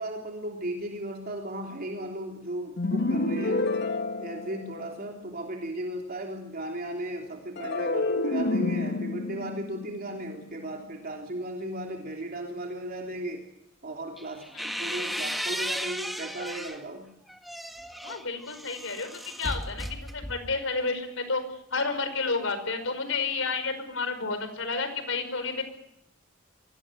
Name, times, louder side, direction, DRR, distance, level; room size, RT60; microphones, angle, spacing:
voice 1, 0.0-3.6 4.2-13.4 13.8-14.5 14.8-17.1, right 1 dB, 50° right, 1 dB, 3.4 m, -36 dB
sound 1, 2.8-5.1 7.6-10.9, left 2 dB, 60° left, 2.0 m, -29 dB
sound 2, 14.2-16.8 17.3-20.6, equal, ahead, 1.9 m, -35 dB
voice 2, 18.0-19.1 19.4-21.4 21.7-25.6, left 4 dB, 75° left, 10 dB, 5.1 m, -31 dB
24.5 x 19.0 x 9.2 m, 0.79 s
head